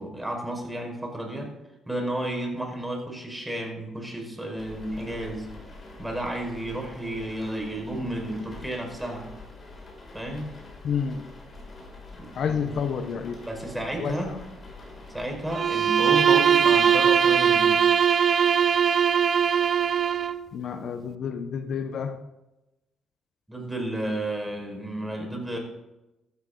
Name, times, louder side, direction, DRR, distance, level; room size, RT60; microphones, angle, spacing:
voice 1, 0.0-1.5 1.9-5.5 6.0-9.3 10.1-10.5 12.2-12.3 12.6-12.7 13.5-14.4 15.1-17.9 23.5-25.6, right 1 dB, 10° right, 2 dB, 5.3 m, -32 dB
sound 1, 4.6-15.6, left 2 dB, 35° left, 6.5 m, -45 dB
voice 2, 10.8-11.2 12.4-13.3 14.0-14.4 20.5-22.2, left 6 dB, 65° left, 8 dB, 1.2 m, -29 dB
Bowed string instrument, 15.5-20.4, right 8 dB, 50° right, 0.7 m, -20 dB
15.5 x 13.0 x 4.0 m, 0.96 s
cardioid pair, 90°, 0 cm